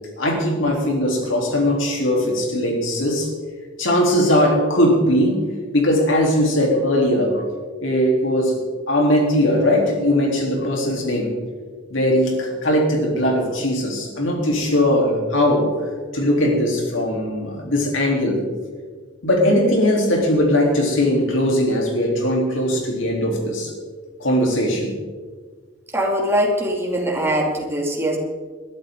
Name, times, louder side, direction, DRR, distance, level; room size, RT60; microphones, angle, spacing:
voice 1, 0.2-3.3 3.8-5.4 5.7-7.4 7.8-8.6 8.9-11.3 11.9-15.7 16.1-18.4 19.2-23.7 24.2-24.9, left 1 dB, 85° left, 0 dB, 3.7 m, -19 dB
voice 2, 25.9-28.2, equal, 15° right, -1 dB, 2.7 m, -21 dB
21.0 x 12.5 x 3.9 m, 1.5 s
head